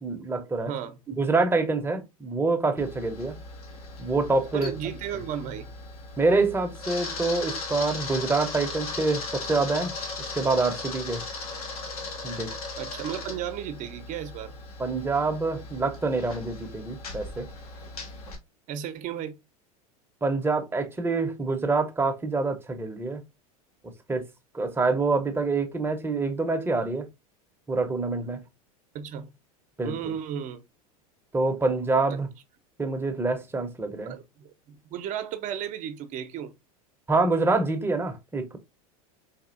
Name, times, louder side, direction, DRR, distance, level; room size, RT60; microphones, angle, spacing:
voice 1, 0.0-0.8 1.1-3.3 4.0-4.7 6.2-9.9 10.4-11.2 12.2-12.5 14.8-17.5 20.2-23.2 23.8-24.3 24.5-27.1 27.7-28.4 29.8-30.1 31.3-32.3 32.8-34.2 37.1-38.6, right 3 dB, 10° right, 0.8 m, -26 dB
voice 2, 0.6-1.0 4.5-5.7 12.8-14.6 18.7-19.4 28.9-29.3 29.8-30.6 32.1-32.2 34.1-36.5, right 9 dB, 45° right, 0.7 m, -34 dB
Camera, 2.8-18.4, left 3 dB, 85° left, 1.3 m, -38 dB
4.2 x 2.7 x 2.5 m
hypercardioid pair, 105°, 19 cm